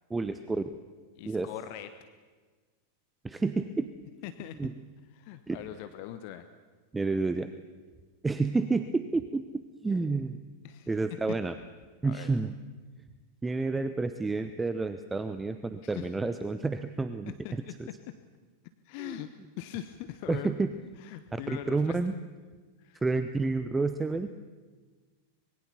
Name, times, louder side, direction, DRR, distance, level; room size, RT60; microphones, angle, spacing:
voice 1, 0.1-0.7 1.2-1.5 3.2-3.9 4.6-4.7 5.5-5.6 6.9-7.5 8.2-10.4 10.9-11.5 12.0-12.5 13.4-17.6 19.0-19.2 20.3-20.7 21.3-22.1 23.0-24.3, right 3 dB, 10° right, 11 dB, 0.9 m, -30 dB
voice 2, 1.1-1.9 4.2-4.6 5.2-6.5 10.6-10.9 12.0-12.3 15.8-16.1 17.4-17.7 18.1-18.2 18.8-19.3 19.6-20.5 21.0-22.0 22.8-23.0, left 13 dB, 45° left, 10 dB, 1.1 m, -41 dB
25.5 x 22.0 x 7.1 m, 1.4 s
figure-of-eight pair, 90°, 0 cm